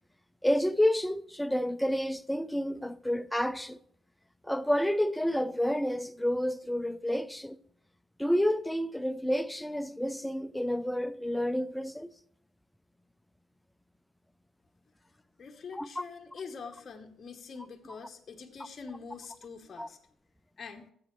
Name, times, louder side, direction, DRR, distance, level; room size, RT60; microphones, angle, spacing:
voice 1, 0.4-3.8 4.4-7.6 8.2-12.1 15.8-16.0 19.8-19.9, equal, 5° left, 0.4 m, -29 dB
voice 2, 15.4-20.0 20.6-20.9, left 5 dB, 40° left, 0.9 m, -44 dB
13.5 x 7.9 x 3.1 m
cardioid pair, 90°, 0 cm